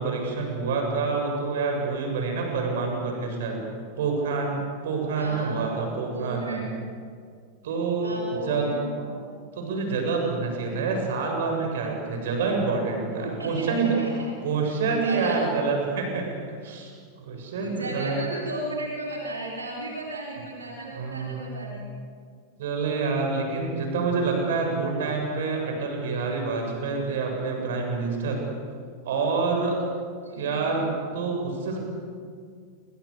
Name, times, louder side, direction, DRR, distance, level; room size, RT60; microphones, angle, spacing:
voice 1, 0.0-3.6 4.0-6.6 7.6-8.7 9.5-14.0 14.4-16.2 16.6-16.9 17.2-18.2 20.9-21.5 22.6-28.4 29.0-29.9 30.3-30.9 31.1-31.8, right 4 dB, 55° right, 2 dB, 7.7 m, -27 dB
voice 2, 5.1-6.7 8.0-9.3 13.2-14.3 14.9-15.5 15.9-16.0 17.6-21.9 30.2-30.8, right 2 dB, 75° right, -2 dB, 4.1 m, -35 dB
29.0 x 27.0 x 6.9 m, 2.1 s
figure-of-eight pair, 90°, 0 cm